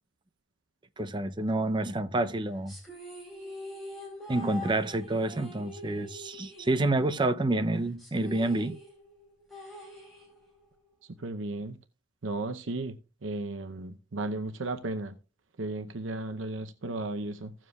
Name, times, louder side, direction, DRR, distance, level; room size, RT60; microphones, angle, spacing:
voice 1, 1.0-2.7 4.3-8.8, right 2 dB, 25° right, 0.6 m, -28 dB
sound 1, 2.7-7.3 7.6-7.7 8.0-10.6, left 2 dB, ahead, 3.9 m, -44 dB
voice 2, 11.2-11.8 12.2-13.0 13.2-15.1 15.6-17.5, right 2 dB, 80° right, 0.7 m, -34 dB
16.0 x 7.4 x 2.3 m
head